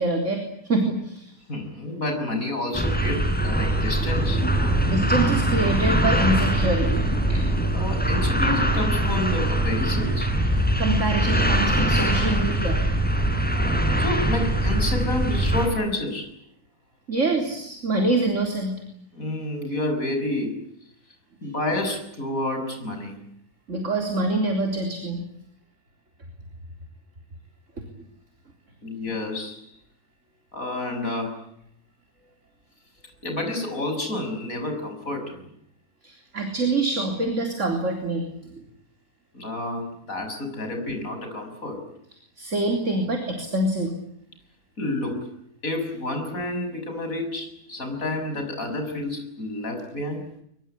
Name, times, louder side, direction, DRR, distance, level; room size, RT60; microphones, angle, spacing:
voice 1, 0.0-1.3 4.8-7.5 10.8-12.8 17.1-18.8 23.7-25.2 36.0-38.3 38.5-38.6 42.4-43.9, right 2 dB, 50° right, 4 dB, 4.1 m, -25 dB
voice 2, 1.5-4.4 7.7-10.3 14.0-16.3 19.1-20.6 21.4-23.2 28.8-29.6 30.5-31.5 33.2-35.5 39.3-41.8 44.8-45.3 45.6-50.3, left 1 dB, 60° left, 5 dB, 7.0 m, -29 dB
sound 1, 2.7-15.7, right 1 dB, 5° left, 4.8 m, -22 dB
24.0 x 23.0 x 9.9 m, 0.72 s
omnidirectional pair, 1.6 m